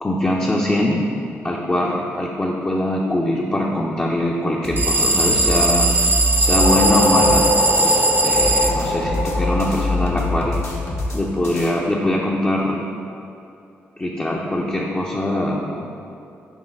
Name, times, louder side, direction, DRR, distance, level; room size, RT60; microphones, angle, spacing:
voice 1, 0.0-1.1 1.4-6.1 6.4-7.5 7.8-10.6 11.1-12.8 14.0-15.8, left 1 dB, 25° left, -3 dB, 0.7 m, -22 dB
sound 1, 4.6-8.0 8.3-11.7, left 1 dB, 55° left, 1.2 m, -25 dB
sound 2, 4.8-8.7, right 2 dB, 30° right, 0.5 m, -19 dB
sound 3, 6.3-10.9, left 1 dB, 85° left, 0.9 m, -23 dB
7.2 x 3.1 x 5.3 m, 2.6 s
hypercardioid pair, 45°, 6 cm